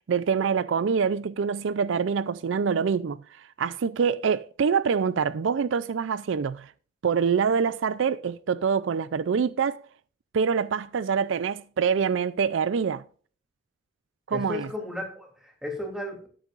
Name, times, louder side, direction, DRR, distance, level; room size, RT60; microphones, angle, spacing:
voice 1, 0.1-6.7 7.0-9.9 10.3-13.0 14.3-14.7, right 6 dB, 70° right, 0.4 m, -25 dB
voice 2, 14.3-16.3, left 1 dB, 5° right, 2.9 m, -34 dB
13.0 x 10.5 x 2.5 m
head